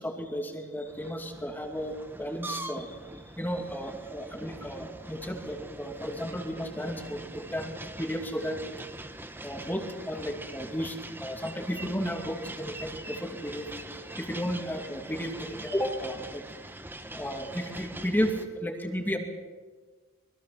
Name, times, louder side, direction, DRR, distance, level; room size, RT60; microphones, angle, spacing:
voice 1, 0.0-3.0 3.3-8.6 9.4-13.7 14.2-16.4 17.1-19.2, equal, 10° left, 3 dB, 2.6 m, -33 dB
sound 1, 0.9-18.5, right 1 dB, 10° right, 1.1 m, -43 dB
25.0 x 22.0 x 6.0 m, 1.4 s
head